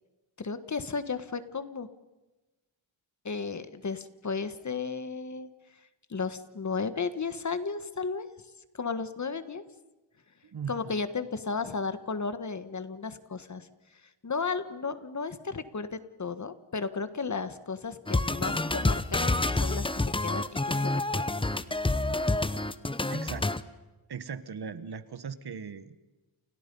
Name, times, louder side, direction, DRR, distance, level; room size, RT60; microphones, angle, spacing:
voice 1, 0.4-1.9 3.2-5.5 6.1-8.3 8.7-9.6 10.7-13.7 14.2-21.4, left 4 dB, 35° left, 12 dB, 1.4 m, -34 dB
voice 2, 10.4-11.0 23.1-23.5 24.1-26.0, right 6 dB, 50° right, 13 dB, 1.4 m, -39 dB
sound 1, 18.1-23.6, left 2 dB, 10° left, 0.8 m, -28 dB
30.0 x 29.0 x 5.4 m, 1.1 s
wide cardioid pair, 150°, 49 cm